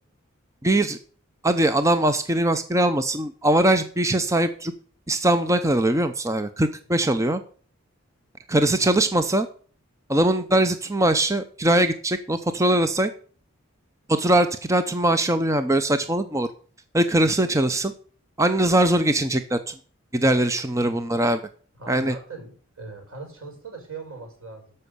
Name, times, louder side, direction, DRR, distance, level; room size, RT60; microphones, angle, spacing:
voice 1, 0.6-1.0 1.4-4.7 5.1-7.4 8.5-9.5 10.1-13.1 14.1-16.5 16.9-17.9 18.4-19.7 20.1-21.4 21.9-22.1, right 1 dB, 15° right, 10 dB, 0.6 m, -21 dB
voice 2, 21.8-24.7, right 3 dB, 85° right, 3 dB, 5.5 m, -40 dB
13.5 x 5.7 x 6.8 m, 0.43 s
head